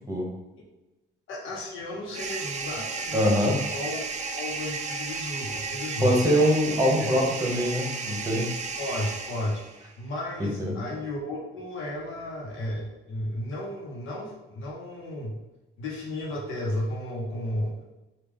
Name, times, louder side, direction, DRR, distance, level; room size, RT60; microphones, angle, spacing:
voice 1, 1.3-4.0 4.3-6.3 7.0-7.1 8.8-9.6 10.0-15.4 15.8-17.8, left 1 dB, 80° left, -3 dB, 1.0 m, -33 dB
sound 1, 2.1-9.9, right 4 dB, 35° right, 0.4 m, -34 dB
voice 2, 3.1-3.6 6.0-8.5 10.6-10.8, equal, 15° right, -2 dB, 1.1 m, -23 dB
3.2 x 2.4 x 3.6 m, 1.0 s
cardioid pair, 90°, 20 cm